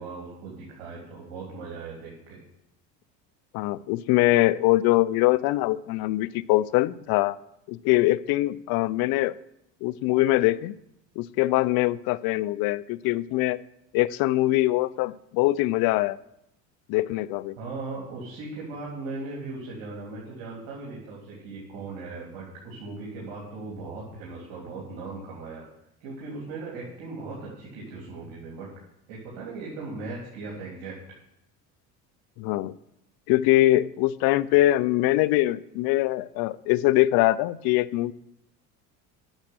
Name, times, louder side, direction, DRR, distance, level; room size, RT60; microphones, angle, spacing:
voice 1, 0.0-2.4 17.6-25.6 26.0-28.7 29.1-30.9, right 3 dB, 75° right, -4 dB, 3.4 m, -38 dB
voice 2, 3.5-7.4 7.7-9.4 9.8-10.8 11.2-13.6 13.9-16.2 16.9-17.6 32.4-32.7 33.3-38.1, left 17 dB, 65° left, 18 dB, 0.6 m, -23 dB
9.0 x 6.6 x 7.8 m, 0.80 s
supercardioid pair, 80°, 39 cm